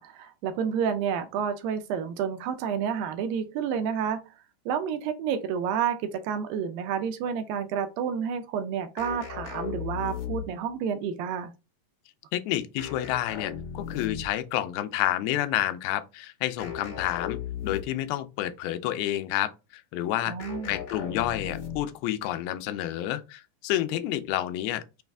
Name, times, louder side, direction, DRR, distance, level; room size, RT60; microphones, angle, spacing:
voice 1, 0.0-4.2 4.7-11.5 20.3-20.7, right 7 dB, 80° right, 2.2 m, -30 dB
sound 1, 9.0-10.7 12.8-14.4 16.6-18.1 20.4-22.0, left 8 dB, 60° left, 2.8 m, -37 dB
voice 2, 12.3-20.4 20.7-25.0, left 13 dB, 90° left, 2.5 m, -29 dB
6.2 x 2.4 x 3.3 m
omnidirectional pair, 4.3 m